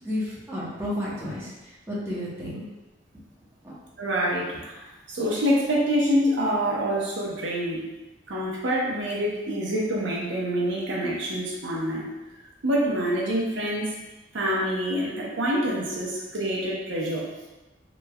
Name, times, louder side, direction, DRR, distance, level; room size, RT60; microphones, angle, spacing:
voice 1, 0.0-2.6 3.6-3.7, left 1 dB, 15° right, -9 dB, 0.9 m, -32 dB
voice 2, 4.0-7.8 8.3-12.1 12.6-13.9 14.3-17.2, equal, 80° right, -4 dB, 0.7 m, -26 dB
3.3 x 3.0 x 2.3 m, 1.1 s
head